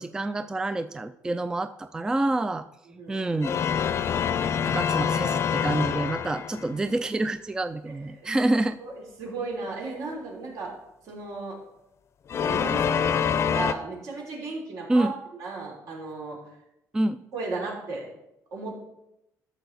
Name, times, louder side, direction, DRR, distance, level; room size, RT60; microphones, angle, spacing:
voice 1, 0.0-2.7 3.1-3.5 4.7-8.8 14.9-15.1 16.9-17.2, right 2 dB, 10° right, 11 dB, 0.3 m, -27 dB
sound 1, 3.4-6.8 12.3-13.7, left 7 dB, 45° left, 0.6 m, -26 dB
voice 2, 7.9-8.3 8.8-10.7 11.0-11.6 12.4-16.6 17.3-18.0 18.5-18.8, right 3 dB, 70° right, 0 dB, 3.3 m, -35 dB
12.5 x 7.0 x 4.0 m, 0.86 s
cardioid pair, 125°, 6 cm